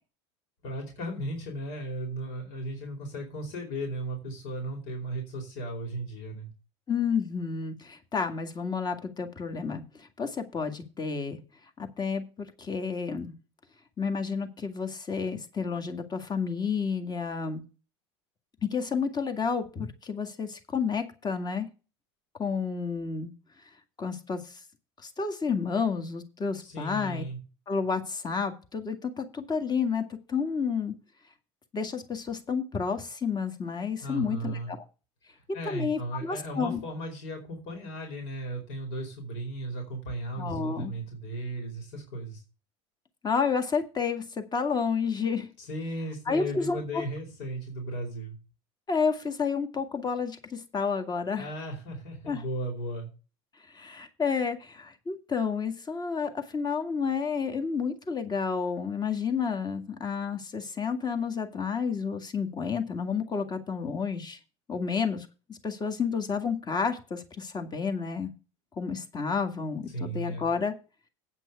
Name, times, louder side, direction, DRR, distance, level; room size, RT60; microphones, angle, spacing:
voice 1, 0.6-6.5 26.6-27.4 34.0-34.7 35.3-42.4 45.6-48.4 51.4-53.1 69.9-70.5, right 1 dB, 70° left, 2 dB, 4.6 m, -36 dB
voice 2, 6.9-11.4 11.8-13.4 14.0-17.6 18.6-21.7 22.4-23.3 24.0-24.4 25.0-27.2 27.7-30.9 31.7-34.8 35.7-36.8 40.4-40.9 43.2-45.5 46.3-46.8 48.9-51.5 52.3-52.4 53.7-64.4 64.7-68.3 68.8-70.7, left 5 dB, 25° left, 6 dB, 2.0 m, -30 dB
9.2 x 6.0 x 6.8 m, 0.33 s
hypercardioid pair, 90°, 15 cm